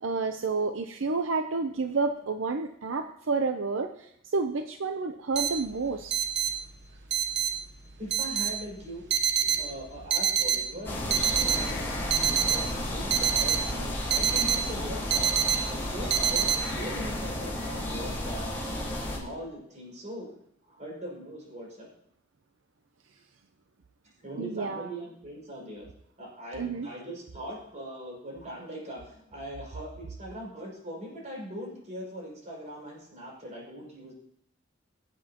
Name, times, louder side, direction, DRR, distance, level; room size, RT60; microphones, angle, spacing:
voice 1, 0.0-6.2 24.4-24.9 26.6-26.9, right 4 dB, 80° right, 7 dB, 0.7 m, -30 dB
sound 1, 5.4-16.6, right 8 dB, 65° right, 1.1 m, -27 dB
voice 2, 8.0-9.0 9.6-11.9 12.5-15.3 15.6-20.3 20.7-21.9 24.2-25.9 26.2-34.1, equal, 40° right, -3 dB, 6.0 m, -41 dB
sound 2, 10.8-19.2, left 1 dB, 15° left, 4.7 m, -33 dB
24.0 x 8.4 x 3.0 m, 0.71 s
head